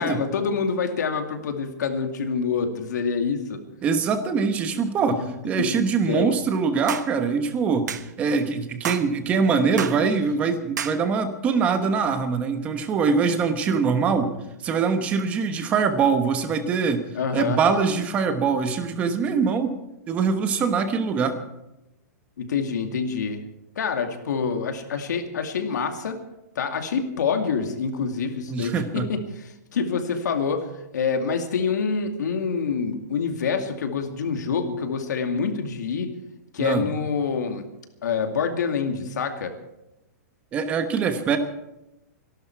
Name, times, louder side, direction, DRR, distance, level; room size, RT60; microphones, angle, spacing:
voice 1, 0.0-3.6 5.1-5.3 5.6-6.3 17.1-17.6 22.4-23.4 23.8-26.2 26.6-36.1 36.5-37.6 38.0-39.5, left 5 dB, 85° left, 5 dB, 2.4 m, -26 dB
voice 2, 3.8-5.2 5.4-7.9 8.2-14.3 14.6-17.0 17.3-19.8 20.1-21.4 28.5-29.1 36.6-36.9 40.5-41.4, right 5 dB, 15° right, 8 dB, 1.1 m, -23 dB
sound 1, 6.9-7.1 7.9-8.1 8.8-9.1 9.8-10.0 10.8-11.0, right 9 dB, 85° right, 1.1 m, -29 dB
24.5 x 12.0 x 4.6 m, 0.94 s
hypercardioid pair, 175°, 9 cm